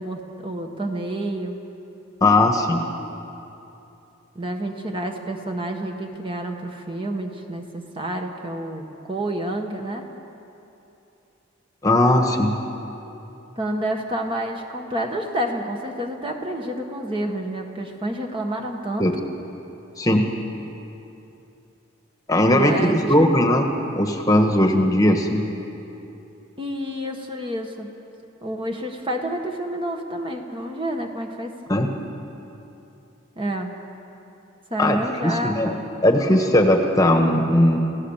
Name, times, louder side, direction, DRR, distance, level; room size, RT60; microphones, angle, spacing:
voice 1, 0.0-1.6 4.3-10.1 13.6-19.1 22.5-23.3 26.6-27.9 28.4-31.9 33.4-33.7 34.7-35.8, right 1 dB, 25° right, 2 dB, 1.5 m, -29 dB
voice 2, 2.2-2.8 11.8-12.5 19.0-19.1 20.0-20.2 22.3-23.7 23.9-25.4 31.7-31.9 34.8-35.7 36.0-37.8, left 1 dB, 15° left, 4 dB, 1.4 m, -18 dB
29.0 x 16.5 x 7.3 m, 2.9 s
head